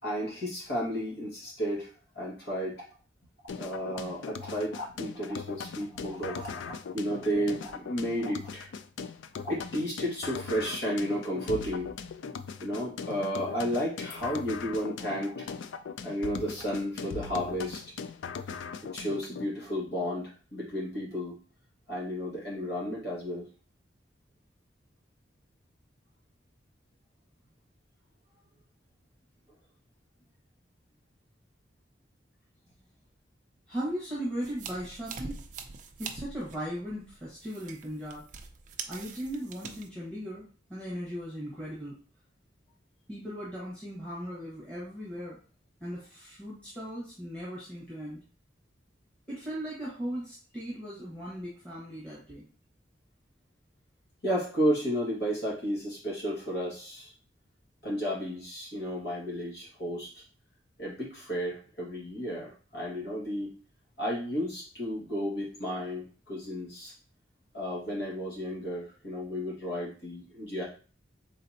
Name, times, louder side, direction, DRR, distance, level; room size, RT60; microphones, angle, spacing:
voice 1, 0.0-2.8 3.6-8.7 9.4-11.9 12.6-17.9 18.8-21.4 21.9-23.5 54.2-57.1 57.8-60.2 60.8-63.5 64.0-66.9 67.5-70.6, equal, 60° left, -5 dB, 1.9 m, -33 dB
sound 1, 3.5-19.5, left 5 dB, 75° left, 0.3 m, -40 dB
voice 2, 33.7-35.3 36.0-38.2 38.9-42.0 43.1-45.4 45.8-48.2 49.3-52.5, equal, 5° left, -9 dB, 1.4 m, -38 dB
sound 2, 34.4-39.9, right 5 dB, 40° right, 0.5 m, -43 dB
4.1 x 3.8 x 2.8 m, 0.39 s
head